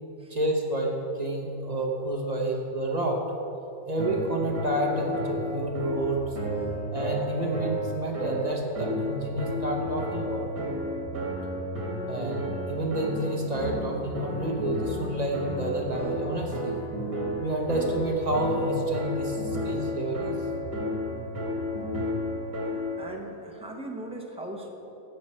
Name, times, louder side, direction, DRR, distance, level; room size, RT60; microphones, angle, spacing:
voice 1, 0.3-3.2 3.9-6.4 6.9-10.5 12.1-16.8 17.4-20.3, right 1 dB, 30° right, 0 dB, 0.9 m, -29 dB
sound 1, 4.0-23.0, equal, 60° right, 3.1 m, -32 dB
voice 2, 23.0-24.7, right 1 dB, 5° right, 1 dB, 0.6 m, -38 dB
15.5 x 6.1 x 4.4 m, 2.9 s
omnidirectional pair, 1.8 m